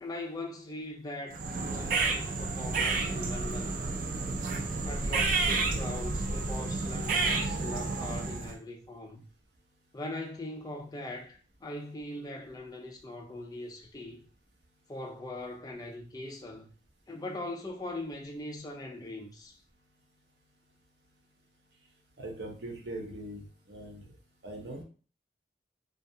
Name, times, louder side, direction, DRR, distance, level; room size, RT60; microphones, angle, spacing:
voice 1, 0.0-3.9 4.8-9.3 9.9-14.2 14.9-16.7 17.1-19.6, left 1 dB, 20° left, 0.4 m, -41 dB
sound 1, 1.3-8.6, right 3 dB, 50° right, 0.4 m, -30 dB
voice 2, 22.2-23.4 23.7-24.1 24.4-24.8, right 1 dB, 80° right, 0.7 m, -41 dB
2.3 x 2.2 x 2.7 m
head